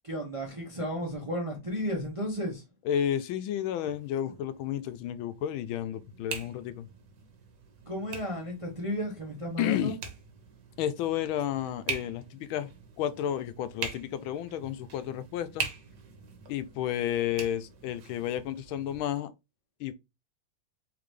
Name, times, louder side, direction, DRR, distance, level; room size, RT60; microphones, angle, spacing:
voice 1, 0.0-2.6 7.9-10.0, equal, 30° right, 0.6 m, -33 dB
voice 2, 2.8-6.9 9.6-10.0 10.8-12.7 13.0-15.7 16.5-19.3 19.8-19.9, left 10 dB, 85° left, 1.4 m, -31 dB
sound 1, 3.8-19.0, right 5 dB, 60° right, 1.5 m, -43 dB
3.9 x 3.9 x 3.2 m
omnidirectional pair, 2.2 m